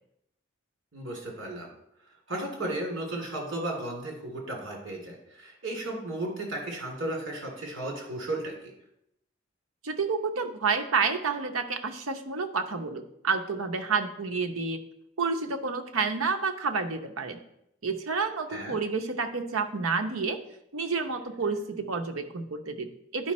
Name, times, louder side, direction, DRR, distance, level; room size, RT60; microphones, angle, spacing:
voice 1, 0.9-1.7 2.3-8.7 18.5-18.7, right 1 dB, 65° right, -1 dB, 2.9 m, -34 dB
voice 2, 9.8-14.8 15.2-17.4 17.8-20.4 20.7-23.3, right 4 dB, 85° right, 6 dB, 0.8 m, -29 dB
11.0 x 5.3 x 4.2 m, 0.80 s
head